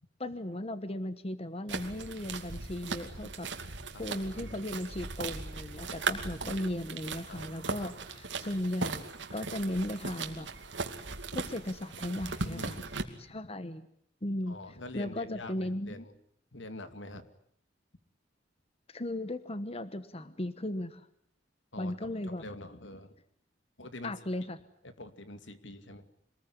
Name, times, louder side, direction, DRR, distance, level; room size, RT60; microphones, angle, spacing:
voice 1, 0.2-3.5 4.0-10.5 11.3-12.8 13.3-13.9 14.2-14.6 14.9-16.1 18.9-21.1 21.8-22.4 24.0-24.6, left 1 dB, 35° left, 12 dB, 1.2 m, -36 dB
sound 1, 1.7-13.0, right 4 dB, 75° right, 2.6 m, -38 dB
voice 2, 12.4-13.4 14.5-16.1 16.5-17.3 21.7-23.2 23.8-24.1 24.8-26.0, left 1 dB, 80° left, 10 dB, 2.5 m, -45 dB
26.0 x 20.5 x 9.9 m, 0.68 s
head